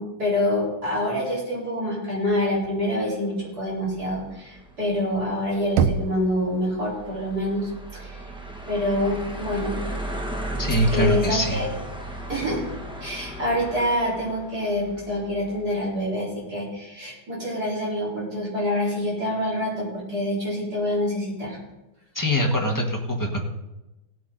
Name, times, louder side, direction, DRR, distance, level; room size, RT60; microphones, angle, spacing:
voice 1, 0.0-8.3 8.7-9.8 10.9-11.7 12.3-12.6 13.0-21.6, left 1 dB, 45° right, -6 dB, 4.8 m, -26 dB
sound 1, 3.7-15.9, right 1 dB, 5° right, 0.5 m, -35 dB
Knock, 5.8-6.7, right 7 dB, 80° right, 1.5 m, -24 dB
voice 2, 10.6-11.6 22.1-23.4, equal, 10° left, 0 dB, 1.2 m, -23 dB
17.0 x 9.1 x 4.0 m, 0.99 s
omnidirectional pair, 2.3 m